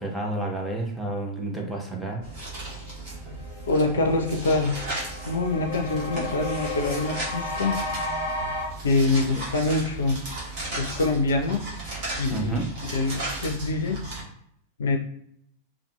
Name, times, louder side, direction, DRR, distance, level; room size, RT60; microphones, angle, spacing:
voice 1, 0.0-2.2 12.3-12.7, right 2 dB, 5° right, 0 dB, 0.6 m, -30 dB
sound 1, 2.2-14.2, right 2 dB, 45° right, 1.1 m, -36 dB
sound 2, 2.9-3.0 3.3-8.6, left 2 dB, 85° right, 0.7 m, -33 dB
voice 2, 3.7-4.9 5.3-7.8 8.8-10.2 10.8-11.6 12.2-14.0 14.8-15.0, left 2 dB, 65° left, 4 dB, 0.3 m, -25 dB
2.6 x 2.4 x 2.2 m, 0.70 s
figure-of-eight pair, 90°, 0 cm